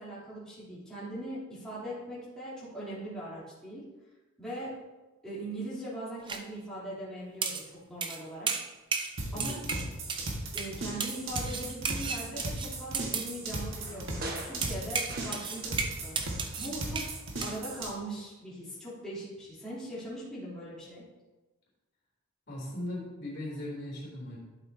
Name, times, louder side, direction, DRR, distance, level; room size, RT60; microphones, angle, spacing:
voice 1, 0.0-3.9 4.4-4.7 5.2-8.5 9.3-9.6 10.5-16.2 16.6-17.0 17.4-21.0, right 1 dB, 5° left, -11 dB, 3.2 m, -40 dB
sound 1, 6.3-6.4 7.4-7.7 8.0-8.2 8.5-9.1 9.4-10.3 10.6-10.7 11.0-13.3 14.6-17.1 17.4-17.6, right 5 dB, 25° right, 0.5 m, -34 dB
voice 2, 9.2-9.8 22.5-24.4, left 1 dB, 50° left, -5 dB, 3.3 m, -39 dB
sound 2, 9.2-17.9, right 2 dB, 60° right, 1.7 m, -37 dB
sound 3, 13.5-16.0 16.2-17.3 17.6-17.7, right 2 dB, 45° right, 1.3 m, -44 dB
12.0 x 7.8 x 2.8 m, 1.2 s
head